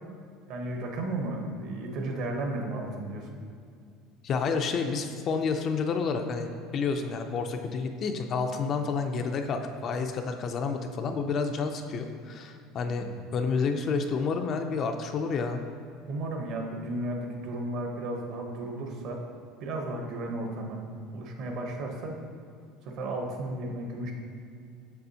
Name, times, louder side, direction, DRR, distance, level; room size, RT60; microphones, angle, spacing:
voice 1, 0.5-3.3 8.9-9.0 12.9-13.2 16.1-19.2 19.6-20.8 21.1-22.2 22.8-24.1, right 1 dB, 50° right, 2 dB, 0.8 m, -34 dB
voice 2, 4.2-13.1 13.3-15.6, left 5 dB, 30° left, 5 dB, 0.3 m, -29 dB
6.7 x 6.7 x 2.7 m, 2.3 s
cardioid pair, 170°, 0 cm